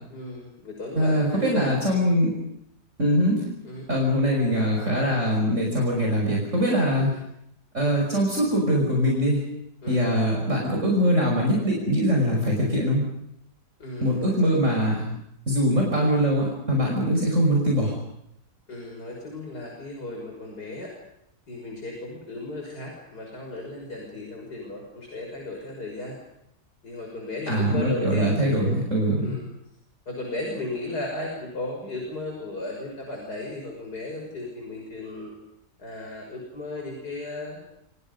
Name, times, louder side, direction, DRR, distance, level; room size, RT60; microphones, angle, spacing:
voice 1, 0.1-1.7 3.6-3.9 7.0-7.2 9.8-10.0 13.8-14.7 18.7-20.9 21.5-26.2 26.8-28.7 29.2-29.4 30.1-35.3 35.8-37.6, left 2 dB, 85° left, 0 dB, 6.6 m, -35 dB
voice 2, 1.0-2.3 3.0-3.4 3.9-7.1 7.7-9.4 9.9-13.0 14.0-15.0 15.5-17.9 27.5-29.4, equal, 50° right, -1 dB, 6.1 m, -22 dB
29.5 x 27.5 x 5.5 m, 0.77 s
omnidirectional pair, 1.7 m